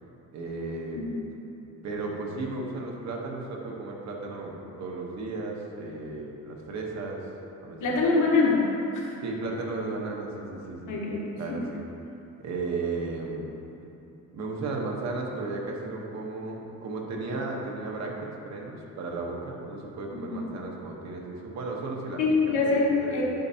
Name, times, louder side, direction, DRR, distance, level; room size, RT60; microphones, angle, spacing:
voice 1, 0.3-1.0 1.8-7.3 7.6-8.1 9.2-11.0 11.4-11.8 12.4-13.5 14.3-18.2 18.4-22.2 22.5-23.2, right 3 dB, 60° right, -1 dB, 1.1 m, -34 dB
voice 2, 7.8-8.7 8.9-9.1 10.9-11.3 22.2-23.2, left 3 dB, 80° left, -3 dB, 1.4 m, -24 dB
10.5 x 5.3 x 2.8 m, 2.9 s
cardioid pair, 170°, 30 cm